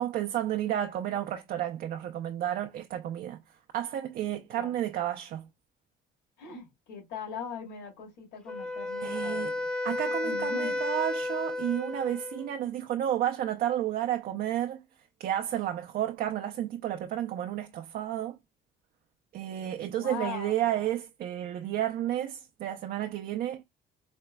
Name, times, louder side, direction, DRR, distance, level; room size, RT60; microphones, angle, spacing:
voice 1, 0.0-3.4 3.7-5.5 9.0-9.5 9.8-14.8 15.2-18.4 19.3-23.6, right 12 dB, 60° right, 0.5 m, -31 dB
voice 2, 6.4-9.7 10.2-10.8 20.0-20.8, left 6 dB, 85° left, 2.5 m, -40 dB
Wind instrument woodwind instrument, 8.5-12.5, left 2 dB, 5° left, 0.5 m, -32 dB
4.3 x 2.9 x 2.2 m
cardioid pair, 110°, 17 cm